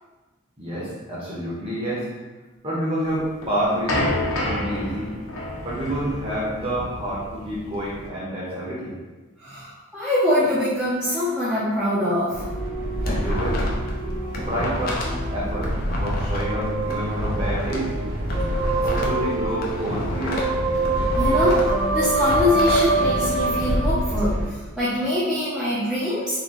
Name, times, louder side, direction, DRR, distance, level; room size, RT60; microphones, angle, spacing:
voice 1, 0.6-2.1 2.6-4.0 4.4-5.1 5.6-9.0 13.0-13.7 14.5-15.7 16.0-17.9 18.8-20.5, equal, 25° right, -7 dB, 1.1 m, -28 dB
sound 1, 3.1-8.1, left 1 dB, 75° left, 0.8 m, -29 dB
voice 2, 9.4-12.4 21.2-26.4, left 1 dB, 5° right, -12 dB, 0.7 m, -24 dB
sound 2, 12.3-24.5, right 2 dB, 55° right, 0.7 m, -25 dB
sound 3, 12.7-13.9 14.2-17.8 18.2-20.5 20.8-22.9, left 1 dB, 45° left, 0.6 m, -29 dB
3.9 x 3.1 x 3.1 m, 1.2 s
head